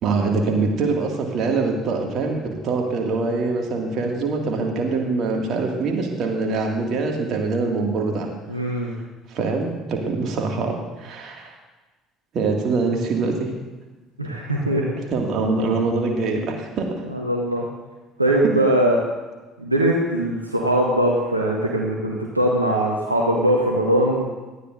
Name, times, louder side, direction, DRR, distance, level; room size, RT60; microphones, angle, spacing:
voice 1, 0.0-8.3 9.3-11.5 12.3-13.5 15.1-16.9 18.4-18.6, right 3 dB, 50° right, 1 dB, 2.1 m, -24 dB
voice 2, 8.5-8.9 14.2-14.9 17.1-17.6 18.2-19.0 19.6-24.2, right 1 dB, 90° right, -1 dB, 1.1 m, -21 dB
18.0 x 13.0 x 2.6 m, 1.2 s
figure-of-eight pair, 55°, 0 cm